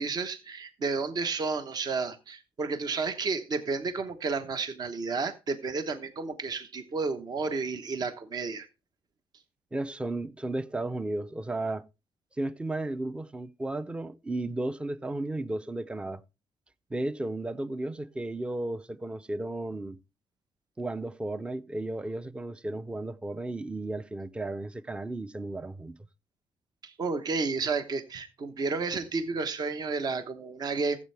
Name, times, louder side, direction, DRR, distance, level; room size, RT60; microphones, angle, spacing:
voice 1, 0.0-8.7 26.8-31.0, right 4 dB, 45° right, 1.1 m, -31 dB
voice 2, 9.7-11.8 12.4-16.2 16.9-20.0 20.8-25.9, right 2 dB, 10° right, 0.5 m, -34 dB
15.0 x 7.5 x 3.3 m
cardioid pair, 125°, 9 cm